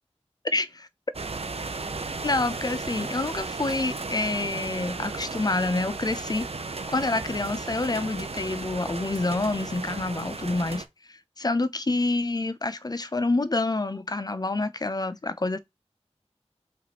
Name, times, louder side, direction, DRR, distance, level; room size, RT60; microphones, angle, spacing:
sound 1, 1.1-10.8, right 3 dB, 65° right, 0.6 m, -35 dB
voice 1, 2.2-6.5 6.9-15.6, left 2 dB, 35° left, 0.4 m, -27 dB
4.9 x 3.4 x 2.8 m
wide cardioid pair, 45°, 11 cm